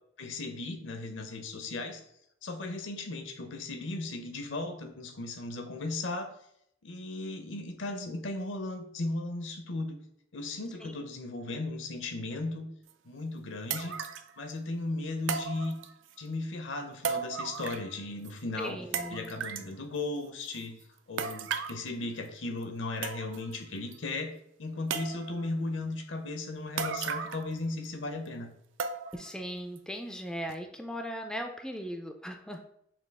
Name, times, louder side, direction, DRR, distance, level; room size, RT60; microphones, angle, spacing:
voice 1, 0.2-2.0 2.4-6.3 6.8-10.0 10.3-12.7 13.0-14.0 14.4-15.7 16.2-18.8 19.1-20.8 21.1-24.3 24.6-28.5, left 2 dB, 70° left, 6 dB, 0.7 m, -36 dB
sound 1, 12.9-13.0 13.7-14.3 15.3-16.1 17.0-18.0 18.2-18.3 18.9-19.7 21.2-21.8 22.6-22.7 23.0-23.6 23.9-24.0 24.9-25.5 26.8-27.5 27.8-27.9 28.8-29.3 29.8-29.9 30.5-30.6, right 6 dB, 70° right, 0.4 m, -35 dB
voice 2, 18.6-19.3 29.1-32.7, equal, 5° left, 4 dB, 0.3 m, -38 dB
5.8 x 2.3 x 3.4 m, 0.72 s
head